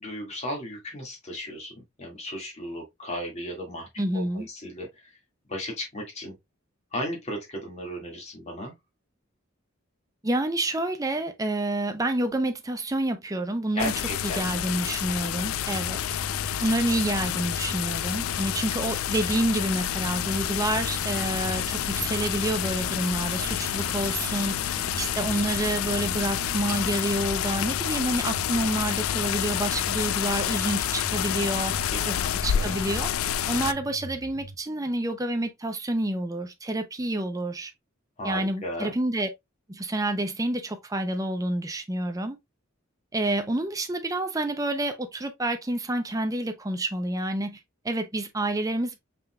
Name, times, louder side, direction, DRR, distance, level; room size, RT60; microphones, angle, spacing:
voice 1, 0.0-3.9 4.1-5.1 5.5-6.3 6.9-8.7 13.7-14.7 31.9-32.8 38.2-38.9, equal, 35° left, 2.0 m, -35 dB
voice 2, 4.0-4.5 10.2-13.9 14.2-16.2 16.6-24.6 25.0-31.7 32.1-32.2 32.4-33.1 33.5-37.7 38.2-39.3 39.7-42.4 43.1-47.6 47.8-49.0, right 1 dB, 15° right, 0.6 m, -28 dB
sound 1, 13.8-33.7, left 10 dB, 90° left, 0.4 m, -29 dB
sound 2, 15.5-34.5, right 2 dB, 70° right, 0.7 m, -43 dB
Idling, 18.8-27.2, right 2 dB, 45° right, 1.3 m, -42 dB
5.5 x 3.8 x 2.3 m
head